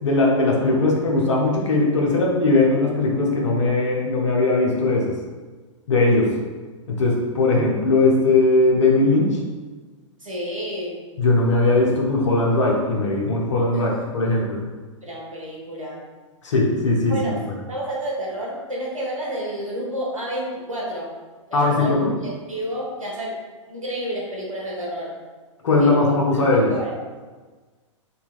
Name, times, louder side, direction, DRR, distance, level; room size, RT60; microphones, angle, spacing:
voice 1, 0.0-5.1 5.9-6.3 6.9-9.4 11.2-14.6 16.4-17.3 21.5-22.1 25.6-26.7, left 2 dB, 65° left, -1 dB, 0.8 m, -19 dB
voice 2, 10.2-11.0 13.7-14.0 15.0-16.1 17.1-17.4 17.7-21.1 21.5-23.4 23.7-25.2 25.8-26.9, equal, 85° right, -4 dB, 1.1 m, -30 dB
3.9 x 2.8 x 2.4 m, 1.4 s
figure-of-eight pair, 105°, 17 cm